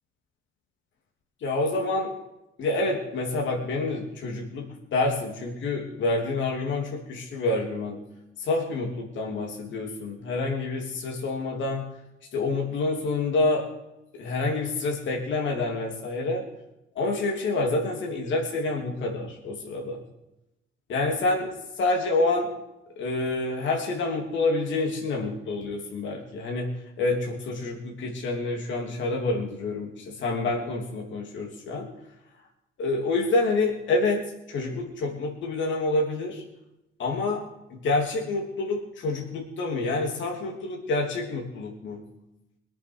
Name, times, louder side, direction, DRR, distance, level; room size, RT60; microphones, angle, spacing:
voice 1, 1.4-2.1 2.6-4.6 4.9-8.0 8.4-11.8 12.3-13.6 14.1-16.4 16.9-20.0 20.9-21.5 21.8-22.5 23.0-26.7 27.0-31.9 32.8-36.4 37.0-37.4 37.7-42.0, left 2 dB, 70° left, 0 dB, 3.1 m, -27 dB
22.0 x 8.1 x 4.8 m, 0.89 s
cardioid pair, 90°, 20 cm